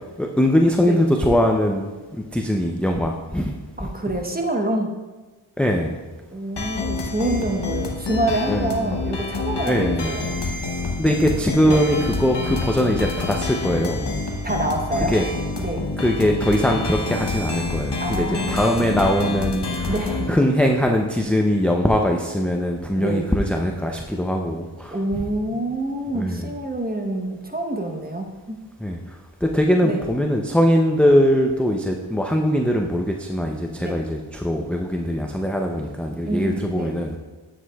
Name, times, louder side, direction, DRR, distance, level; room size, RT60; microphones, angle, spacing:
voice 1, 0.2-1.9 2.3-3.5 3.8-3.9 5.6-6.0 8.5-8.9 9.6-10.3 11.0-14.2 15.1-15.3 16.0-19.9 20.3-25.2 25.5-25.6 26.1-26.5 28.8-29.0 29.4-37.2, equal, 5° left, 1 dB, 0.4 m, -21 dB
voice 2, 3.8-5.0 6.3-10.3 11.6-11.9 14.4-15.1 15.6-15.9 18.0-18.7 19.9-20.4 22.9-23.3 24.9-28.6 29.8-30.0 33.8-34.0 36.3-36.9, right 1 dB, 20° right, 3 dB, 0.9 m, -26 dB
sound 1, 6.6-20.3, left 3 dB, 60° left, 0.9 m, -28 dB
8.2 x 7.4 x 2.3 m, 1.3 s
wide cardioid pair, 40°, 48 cm